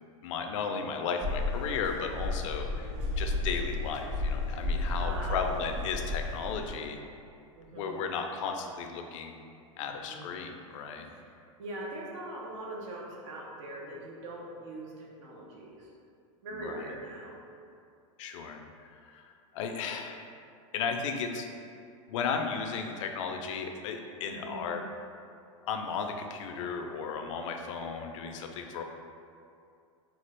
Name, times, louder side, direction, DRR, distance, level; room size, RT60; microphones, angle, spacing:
voice 1, 0.2-7.0 7.7-9.3 9.8-11.1 16.5-16.9 18.2-18.6 18.9-20.3 20.7-21.5 22.1-24.8 25.7-28.8, left 5 dB, 65° left, 4 dB, 0.4 m, -35 dB
sound 1, 1.2-6.7, left 2 dB, 35° right, 1.3 m, -33 dB
voice 2, 4.9-5.4 6.2-6.7 7.5-8.0 9.9-10.3 11.6-15.9 16.4-17.4 24.3-24.7, right 2 dB, 70° right, -2 dB, 0.7 m, -42 dB
3.2 x 2.4 x 3.3 m, 2.4 s
hypercardioid pair, 115°, 17 cm